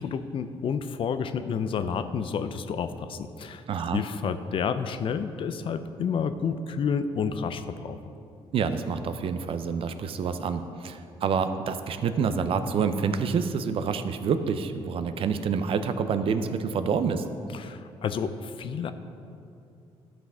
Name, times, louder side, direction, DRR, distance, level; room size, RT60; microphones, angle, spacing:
voice 1, 0.0-3.6 3.9-8.0 17.5-18.9, left 6 dB, 55° left, 11 dB, 0.6 m, -30 dB
voice 2, 3.7-4.0 8.5-17.2, right 6 dB, 60° right, 10 dB, 0.6 m, -27 dB
12.0 x 6.1 x 5.5 m, 2.6 s
cardioid pair, 105°, 11 cm